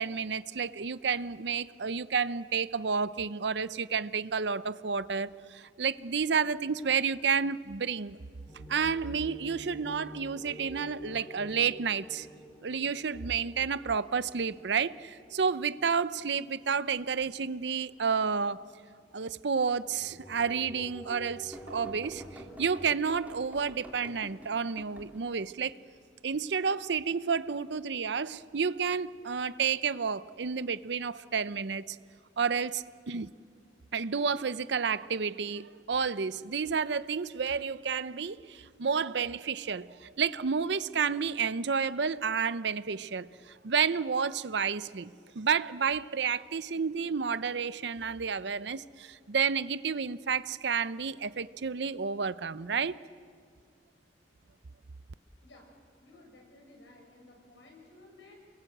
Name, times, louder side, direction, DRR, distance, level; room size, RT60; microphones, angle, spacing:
voice 1, 0.0-8.2 8.7-12.3 12.6-18.6 19.1-25.8 26.2-32.0 32.4-33.3 33.9-45.1 45.4-53.0, right 6 dB, 70° right, 15 dB, 0.6 m, -30 dB
sound 1, 8.5-18.2 18.6-18.7 19.4-22.9, equal, 15° left, 2.3 m, -49 dB
sound 2, 21.5-25.5 29.0-29.3 30.5-30.6, right 1 dB, 10° right, 3.7 m, -49 dB
voice 2, 56.0-58.3, left 2 dB, 80° left, 0 dB, 7.4 m, -55 dB
28.5 x 23.0 x 7.9 m, 2.2 s
head